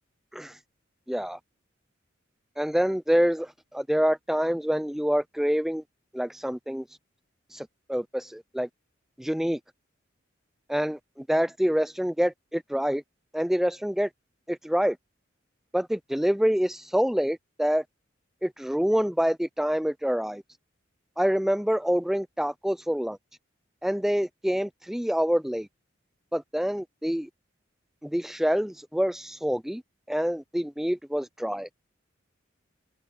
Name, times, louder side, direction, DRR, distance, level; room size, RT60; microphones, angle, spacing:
voice 1, 1.1-1.4 2.6-5.8 6.1-6.8 7.5-8.7 9.2-9.6 10.7-13.0 13.3-14.1 14.5-15.0 15.7-17.8 18.4-20.4 21.2-23.2 23.8-25.7 26.3-27.3 28.0-29.8 30.1-31.7, equal, ahead, 0.3 m, -26 dB
head